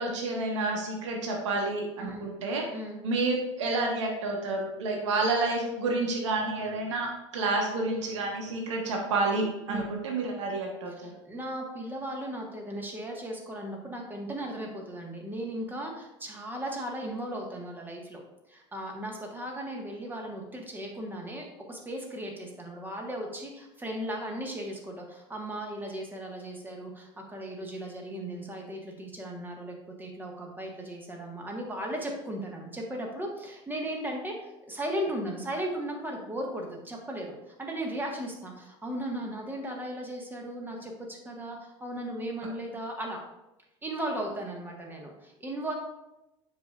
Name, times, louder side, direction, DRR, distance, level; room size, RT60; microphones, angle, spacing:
voice 1, 0.0-2.6 3.0-11.1, right 3 dB, 65° right, 1 dB, 1.2 m, -29 dB
voice 2, 2.7-3.0 9.7-9.9 11.0-18.2 18.5-43.2 43.8-45.7, right 1 dB, 10° right, 0 dB, 1.4 m, -36 dB
7.3 x 5.8 x 2.4 m, 0.94 s
figure-of-eight pair, 75°, 16 cm